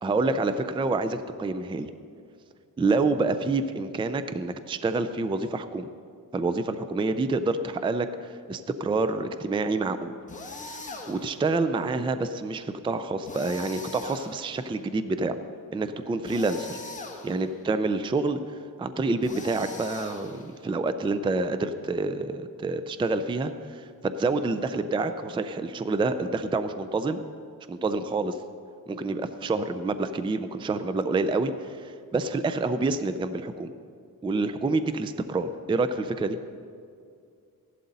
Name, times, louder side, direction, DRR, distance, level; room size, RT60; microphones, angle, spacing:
voice 1, 0.0-1.9 2.8-5.9 6.3-8.1 8.5-10.1 10.6-10.8 11.1-15.4 15.7-16.8 17.2-18.4 18.8-27.2 27.7-28.4 28.9-33.7 34.2-36.4, right 3 dB, 15° right, 10 dB, 0.4 m, -27 dB
sound 1, 10.3-11.4 13.2-14.7 16.2-17.5 19.2-20.6, left 3 dB, 20° left, 1.2 m, -41 dB
15.5 x 11.5 x 4.1 m, 2.3 s
wide cardioid pair, 145°, 36 cm